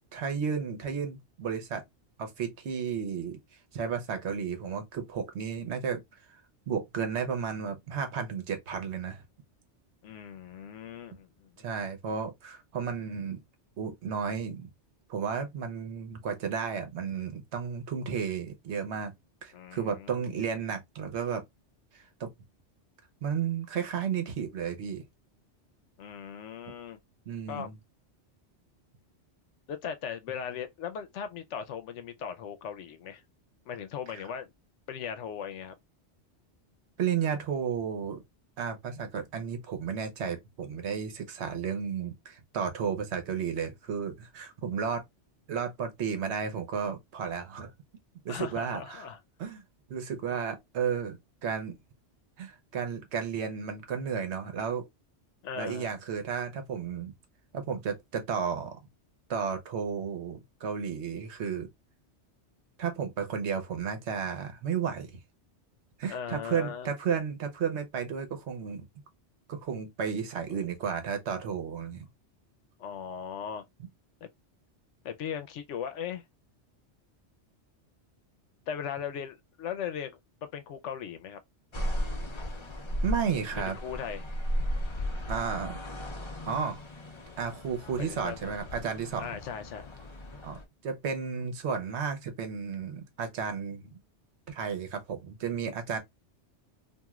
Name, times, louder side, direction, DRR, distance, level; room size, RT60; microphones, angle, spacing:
voice 1, 0.1-1.8 2.2-3.4 3.7-6.0 6.7-9.2 11.6-13.4 13.8-14.7 15.1-19.1 19.4-21.4 21.9-22.3 23.2-25.0 27.3-27.7 34.1-34.2 37.0-38.2 38.6-45.0 45.5-47.7 48.2-49.0 49.4-49.6 49.9-51.7 52.4-54.9 55.6-57.1 57.5-58.8 59.3-61.7 62.8-65.2 66.0-68.8 69.5-72.1 83.0-83.8 85.3-85.8 86.5-86.8 87.4-89.4 90.4-94.0 94.5-96.0, right 6 dB, 70° right, 1.0 m, -33 dB
voice 2, 10.0-11.8 19.5-20.3 26.0-27.0 27.5-27.7 29.7-33.2 33.7-34.5 34.9-35.8 48.3-49.2 55.4-55.9 66.1-66.9 70.5-70.7 72.8-73.6 75.0-76.2 78.7-81.4 83.5-84.2 88.0-88.5 89.2-89.9, left 8 dB, 85° left, 0.9 m, -38 dB
sound 1, 81.7-90.6, equal, 35° left, 0.5 m, -35 dB
3.0 x 2.5 x 2.2 m
omnidirectional pair, 1.2 m